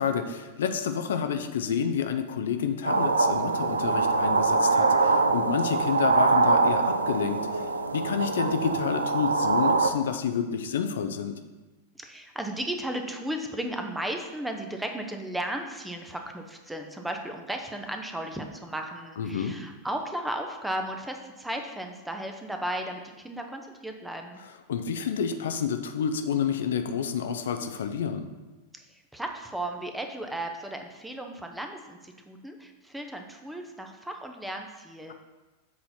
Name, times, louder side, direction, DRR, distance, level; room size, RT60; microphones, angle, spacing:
voice 1, 0.0-11.4 19.2-19.5 24.7-28.3, left 7 dB, 60° left, 7 dB, 0.5 m, -29 dB
sound 1, 2.8-9.9, right 4 dB, 75° right, 0.5 m, -24 dB
voice 2, 12.0-24.4 28.7-35.1, right 1 dB, 5° right, 4 dB, 0.8 m, -35 dB
7.7 x 4.2 x 5.7 m, 1.2 s
figure-of-eight pair, 90°, 0 cm